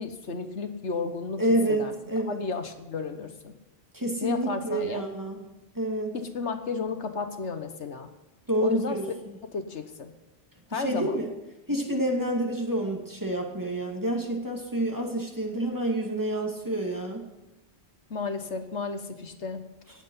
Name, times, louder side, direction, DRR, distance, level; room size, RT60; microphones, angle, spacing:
voice 1, 0.0-1.9 2.3-3.5 4.2-5.0 6.1-8.1 8.6-9.0 9.5-10.1 10.7-11.2 18.1-19.7, left 5 dB, 75° left, 8 dB, 1.6 m, -33 dB
voice 2, 1.4-2.4 3.9-5.4 5.7-6.1 8.5-9.3 10.7-11.3 11.7-17.3, right 1 dB, 15° right, 1 dB, 2.6 m, -28 dB
18.5 x 8.0 x 5.6 m, 1.0 s
omnidirectional pair, 1.2 m